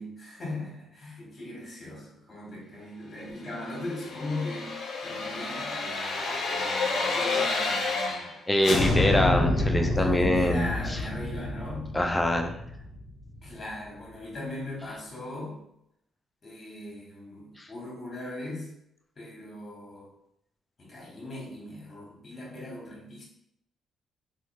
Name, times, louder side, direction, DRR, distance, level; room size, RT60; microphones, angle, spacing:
voice 1, 0.0-4.8 5.0-8.4 9.9-11.9 13.4-15.6 16.4-18.7 19.2-20.1 20.8-23.2, left 1 dB, 35° left, -2 dB, 1.3 m, -39 dB
sound 1, 3.6-8.4 8.6-13.5 13.9-14.0, left 2 dB, 60° left, 0.7 m, -29 dB
voice 2, 8.5-11.0 11.9-12.5 17.6-17.7, left 1 dB, 15° left, 3 dB, 0.4 m, -24 dB
3.1 x 2.4 x 3.1 m, 0.77 s
cardioid pair, 90°, 0 cm